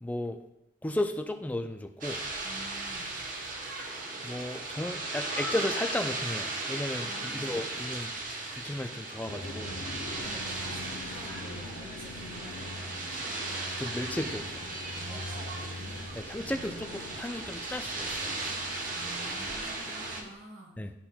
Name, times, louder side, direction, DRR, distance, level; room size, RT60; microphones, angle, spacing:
voice 1, 0.0-0.4 0.8-2.2 4.2-8.1 8.5-9.7 13.8-14.6 16.2-18.3 20.8-20.9, left 1 dB, 10° left, 6 dB, 0.3 m, -34 dB
sound 1, 2.0-20.2, right 2 dB, 45° right, 0.9 m, -37 dB
voice 2, 2.4-3.1 7.0-7.7 9.4-10.0 10.2-13.3 13.8-14.3 14.6-16.0 16.4-16.9 18.8-20.7, right 1 dB, 85° right, -2 dB, 1.9 m, -49 dB
sound 2, 9.3-20.3, left 2 dB, 80° left, 0.7 m, -44 dB
11.5 x 4.3 x 2.3 m, 0.86 s
head